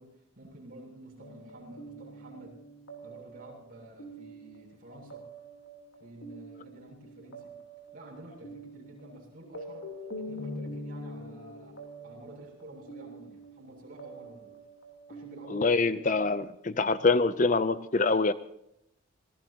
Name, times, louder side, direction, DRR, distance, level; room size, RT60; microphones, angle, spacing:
voice 1, 0.0-2.6 3.0-5.2 6.0-7.6 7.9-9.8 10.2-11.8 12.0-14.5 15.1-16.2, right 1 dB, 40° right, -2 dB, 7.3 m, -50 dB
sound 1, 1.2-16.4, equal, 70° left, 3.5 m, -45 dB
voice 2, 15.5-18.3, left 3 dB, 35° left, 14 dB, 0.5 m, -25 dB
26.5 x 18.0 x 2.9 m, 0.79 s
head